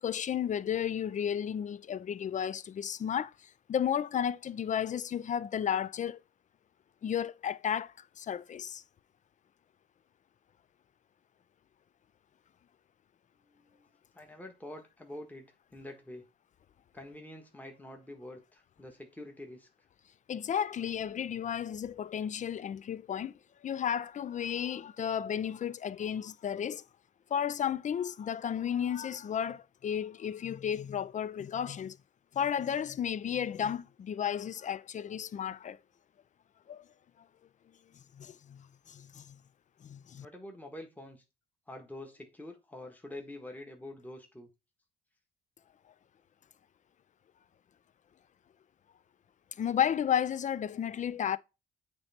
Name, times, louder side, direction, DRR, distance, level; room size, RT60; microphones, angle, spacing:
voice 1, 0.0-3.3 3.7-6.2 7.0-8.8 20.3-23.3 23.6-26.8 27.3-32.0 32.3-35.8 36.7-36.8 38.2-39.4 39.8-40.3 49.6-51.4, left 9 dB, 40° left, 0.4 m, -33 dB
voice 2, 13.4-13.9 14.1-16.3 16.9-19.7 40.2-41.2 41.7-44.5, left 1 dB, 10° left, 1.6 m, -46 dB
8.6 x 3.4 x 4.3 m
cardioid pair, 90°, 20 cm